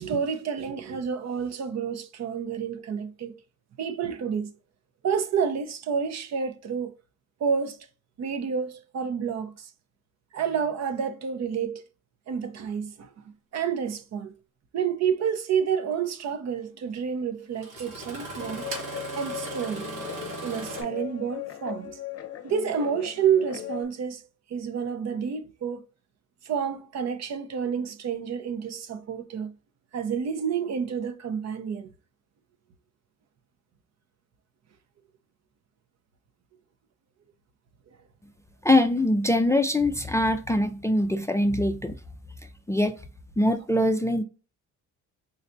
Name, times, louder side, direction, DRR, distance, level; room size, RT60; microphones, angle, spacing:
voice 1, 0.0-3.3 3.8-4.5 5.0-6.9 7.4-7.9 8.2-9.7 10.3-11.8 12.3-13.1 13.5-14.3 14.7-18.6 19.1-19.9 20.4-22.0 22.4-24.2 24.5-25.8 26.4-29.5 29.9-31.9, right 7 dB, 60° right, 0.7 m, -29 dB
Engine starting, 15.3-15.4 16.9-17.0 17.6-20.8, right 2 dB, 90° right, 1.6 m, -37 dB
Guitar, 18.4-23.8, left 11 dB, 50° left, 0.6 m, -38 dB
voice 2, 38.6-42.0 42.7-42.9 43.4-44.2, left 1 dB, 10° left, 0.3 m, -23 dB
4.0 x 3.2 x 2.6 m
cardioid pair, 90°, 30 cm